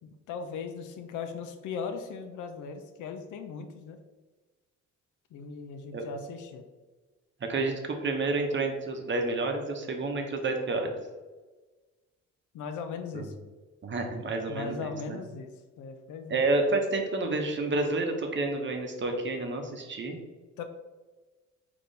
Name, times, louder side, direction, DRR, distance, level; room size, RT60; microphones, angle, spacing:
voice 1, 0.0-4.0 5.3-6.7 12.5-13.3 14.5-16.5 20.6-20.7, left 5 dB, 80° left, 7 dB, 0.6 m, -38 dB
voice 2, 7.5-10.9 13.1-13.3 13.8-15.2 16.3-20.2, right 2 dB, 40° right, 3 dB, 0.8 m, -29 dB
3.7 x 2.9 x 3.9 m, 1.3 s
cardioid pair, 90°, 30 cm